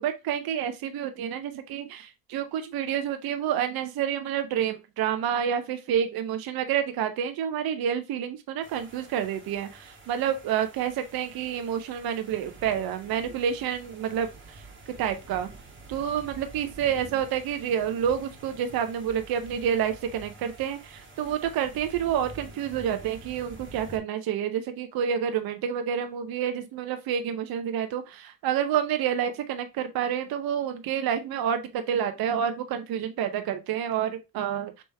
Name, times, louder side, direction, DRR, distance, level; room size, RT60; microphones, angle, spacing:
voice 1, 0.0-14.6 15.0-15.5 15.9-34.8, right 9 dB, 70° right, 0.6 m, -29 dB
sound 1, 8.6-24.0, right 3 dB, 30° right, 1.4 m, -48 dB
3.4 x 3.1 x 4.2 m
cardioid pair, 70°, 37 cm